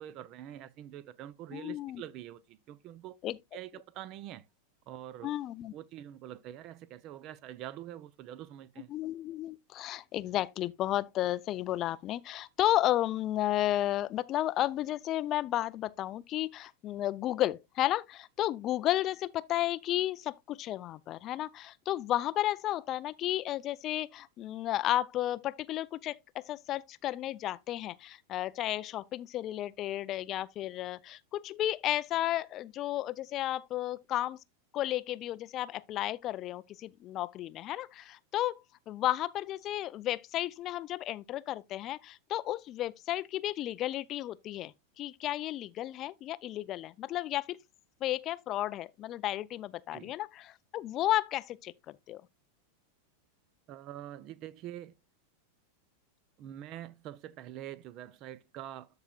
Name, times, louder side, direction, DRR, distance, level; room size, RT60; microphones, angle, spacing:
voice 1, 0.0-3.2 3.5-4.4 4.9-5.3 5.7-8.9 49.9-50.1 53.7-54.9 56.4-58.9, right 12 dB, 40° right, 0.5 m, -45 dB
voice 2, 1.5-2.0 3.2-3.4 5.2-5.7 8.9-34.4 34.7-38.6 38.9-47.6 48.0-51.7 52.1-52.2, left 14 dB, 35° left, 0.3 m, -33 dB
13.5 x 4.9 x 2.3 m
figure-of-eight pair, 90°, 0 cm